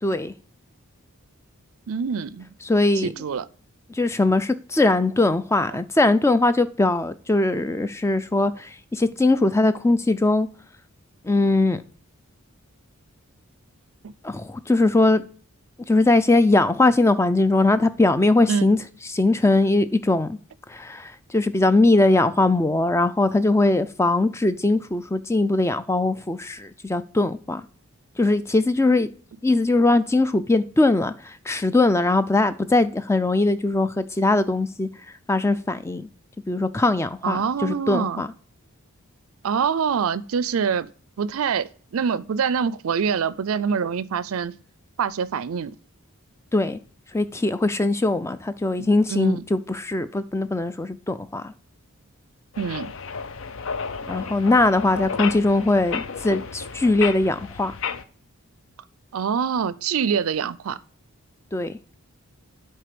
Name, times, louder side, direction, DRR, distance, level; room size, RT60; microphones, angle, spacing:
voice 1, 0.0-0.3 2.7-3.1 3.9-10.5 11.2-11.8 14.2-15.2 15.9-18.8 19.1-20.4 20.7-27.6 28.2-29.1 29.4-34.9 35.3-36.1 36.5-38.3 46.5-46.8 47.1-51.5 54.1-57.8 61.5-61.8, left 2 dB, 10° left, 0.4 m, -21 dB
voice 2, 1.9-2.5 3.0-3.5 5.7-5.8 14.0-14.1 18.5-18.7 37.2-38.2 39.4-40.9 41.2-44.5 45.0-45.8 48.8-49.4 52.6-52.9 59.1-60.8, right 6 dB, 70° right, 0.4 m, -25 dB
sound 1, 52.5-58.0, left 5 dB, 60° left, 0.6 m, -32 dB
7.6 x 4.5 x 5.1 m
head